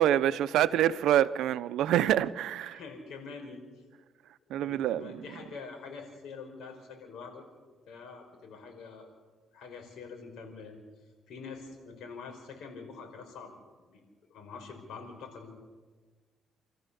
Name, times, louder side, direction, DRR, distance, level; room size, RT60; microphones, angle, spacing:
voice 1, 0.0-2.8 4.5-5.2, right 11 dB, 85° right, 15 dB, 0.7 m, -26 dB
voice 2, 2.7-3.6 4.6-7.4 7.9-9.1 9.5-10.8 11.3-13.5 13.8-14.0 14.3-15.5, left 4 dB, 80° left, 3 dB, 5.1 m, -45 dB
28.5 x 14.0 x 7.0 m, 1.4 s
cardioid pair, 90°, 0 cm